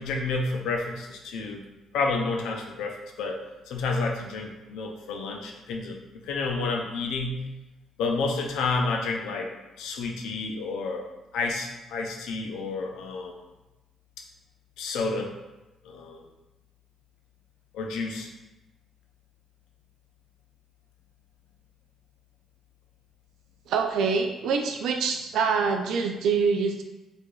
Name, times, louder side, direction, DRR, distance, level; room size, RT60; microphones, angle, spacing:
voice 1, 0.0-1.6 1.9-3.4 3.7-7.4 8.0-9.5 9.8-13.3 14.8-15.3 15.8-16.2 17.7-18.3, left 3 dB, 90° left, 2 dB, 0.5 m, -30 dB
voice 2, 23.7-26.8, right 5 dB, 80° right, 5 dB, 0.4 m, -25 dB
4.7 x 2.5 x 2.3 m, 1.0 s
cardioid pair, 90°, 0 cm